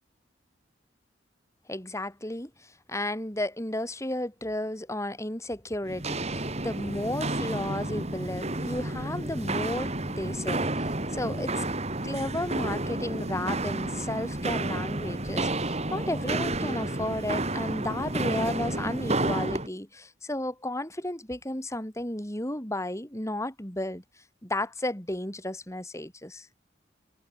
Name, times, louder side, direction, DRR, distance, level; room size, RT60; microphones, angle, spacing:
voice 1, 1.7-11.6 12.0-24.0 24.4-26.5, left 1 dB, 15° left, 3.8 m, -33 dB
Walk footsteps, 5.9-19.7, right 2 dB, 35° right, 3.8 m, -31 dB
head